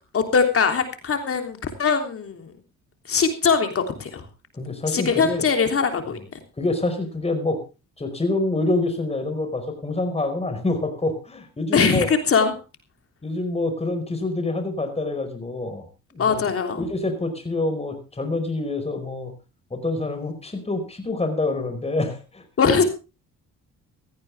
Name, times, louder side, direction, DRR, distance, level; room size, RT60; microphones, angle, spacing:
voice 1, 0.1-2.5 3.1-4.2 4.9-6.2 11.7-12.5 16.2-16.8 22.6-22.8, left 5 dB, 50° left, 6 dB, 3.3 m, -21 dB
voice 2, 4.5-5.4 6.6-7.6 8.0-12.1 13.2-15.8 16.1-16.5 16.8-19.3 19.7-22.4, left 2 dB, 20° left, 7 dB, 5.0 m, -26 dB
16.5 x 15.0 x 3.5 m, 0.31 s
cardioid pair, 90°, 30 cm